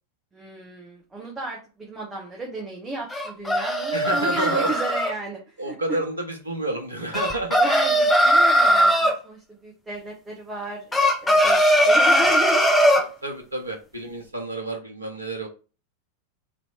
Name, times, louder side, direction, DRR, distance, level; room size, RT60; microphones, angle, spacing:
voice 1, 0.3-6.0 7.6-12.7, right 3 dB, 15° right, -3 dB, 1.0 m, -33 dB
sound 1, 3.1-5.1 7.1-9.2 10.9-13.1, equal, 10° left, 0.9 m, -19 dB
voice 2, 3.9-4.8 5.6-7.6 13.2-15.5, right 1 dB, 80° right, 3 dB, 0.9 m, -29 dB
3.2 x 2.9 x 4.1 m, 0.34 s
figure-of-eight pair, 90°, 0 cm